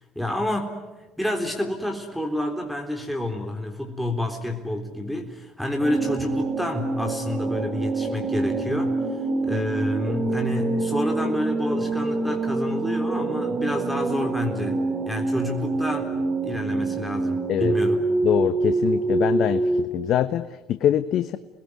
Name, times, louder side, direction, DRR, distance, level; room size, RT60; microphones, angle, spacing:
voice 1, 0.2-0.8 1.2-9.0 9.4-14.8 15.1-16.2 16.4-18.0, left 1 dB, ahead, 1 dB, 3.8 m, -29 dB
sound 1, 5.8-19.8, right 3 dB, 35° right, 5.2 m, -26 dB
voice 2, 18.2-21.4, left 10 dB, 55° left, 11 dB, 1.0 m, -24 dB
29.0 x 21.0 x 9.7 m, 1.1 s
hypercardioid pair, 70°, 0 cm